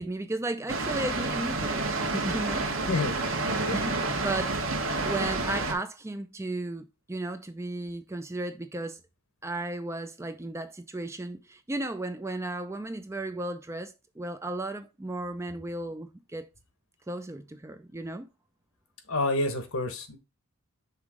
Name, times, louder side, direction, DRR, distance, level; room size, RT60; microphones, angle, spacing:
voice 1, 0.0-2.7 3.7-9.0 9.4-16.5 17.1-18.3, right 2 dB, 10° right, 0.4 m, -34 dB
Water, 0.7-5.7, right 3 dB, 60° right, 1.1 m, -29 dB
voice 2, 2.9-3.2 3.4-3.8 19.1-20.2, left 2 dB, 65° left, 1.1 m, -29 dB
5.7 x 3.6 x 4.8 m
head